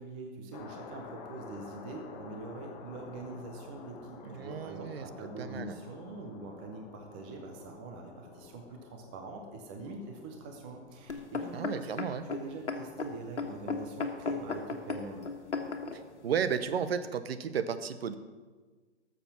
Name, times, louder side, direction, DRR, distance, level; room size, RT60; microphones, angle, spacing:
voice 1, 0.0-11.9 12.3-15.3, right 3 dB, 10° right, 3 dB, 0.3 m, -44 dB
sound 1, 0.5-17.0, left 5 dB, 35° left, 1.2 m, -52 dB
voice 2, 4.2-5.1 5.4-5.8 11.5-12.2 15.9-18.2, right 7 dB, 60° right, 11 dB, 0.9 m, -33 dB
sound 2, 11.1-16.0 16.7-16.8, left 5 dB, 80° left, 1.5 m, -35 dB
13.0 x 7.1 x 5.9 m, 1.4 s
hypercardioid pair, 130°, 34 cm